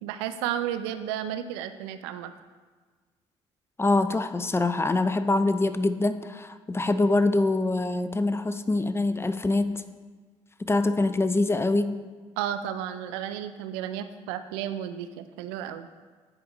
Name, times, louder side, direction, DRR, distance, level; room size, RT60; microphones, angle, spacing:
voice 1, 0.0-2.3 12.4-15.9, right 10 dB, 85° right, 10 dB, 0.4 m, -33 dB
voice 2, 3.8-9.8 10.6-12.0, left 2 dB, 20° left, 11 dB, 0.5 m, -24 dB
9.4 x 4.9 x 3.0 m, 1.4 s
hypercardioid pair, 55°, 14 cm